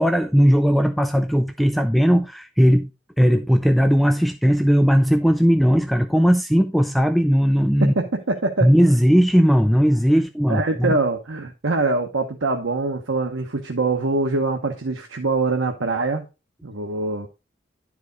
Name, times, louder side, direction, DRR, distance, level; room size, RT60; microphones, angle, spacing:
voice 1, 0.0-2.9 3.2-7.9 8.6-11.0, equal, ahead, 0.4 m, -17 dB
voice 2, 7.8-8.7 10.5-16.2 16.6-17.3, right 3 dB, 90° right, 1.0 m, -24 dB
10.5 x 4.8 x 3.9 m
head